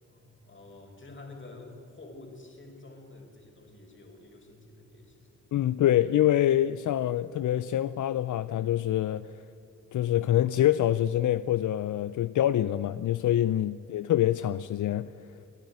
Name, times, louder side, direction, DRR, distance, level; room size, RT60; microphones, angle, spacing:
voice 1, 0.0-5.4, left 2 dB, 40° left, 4.5 m, -49 dB
voice 2, 5.5-9.5 9.9-15.3, left 12 dB, 75° left, 0.5 m, -26 dB
29.0 x 10.5 x 9.6 m
cardioid pair, 75°, 31 cm